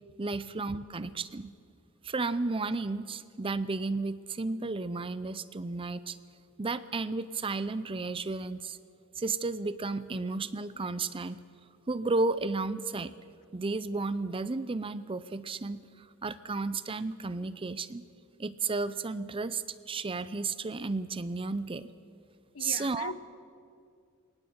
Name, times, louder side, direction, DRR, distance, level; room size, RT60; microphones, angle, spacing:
voice 1, 0.2-1.5 2.0-6.2 6.6-8.8 9.2-11.4 11.9-13.1 13.5-18.0 18.4-21.9 22.6-23.1, right 3 dB, 25° right, 0.5 m, -33 dB
voice 2, 22.5-23.2, left 5 dB, 70° left, 0.8 m, -40 dB
20.0 x 19.0 x 7.9 m
head